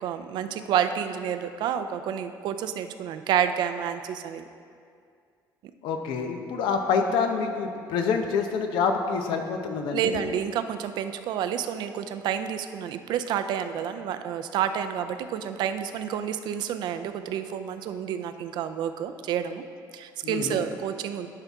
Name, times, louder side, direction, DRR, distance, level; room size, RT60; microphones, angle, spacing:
voice 1, 0.0-4.4 9.9-19.7 19.9-21.3, right 9 dB, 70° right, 9 dB, 0.4 m, -29 dB
voice 2, 5.8-10.2 20.2-20.6, left 5 dB, 85° left, 5 dB, 0.8 m, -27 dB
11.5 x 5.6 x 3.5 m, 2.3 s
cardioid pair, 140°, 8 cm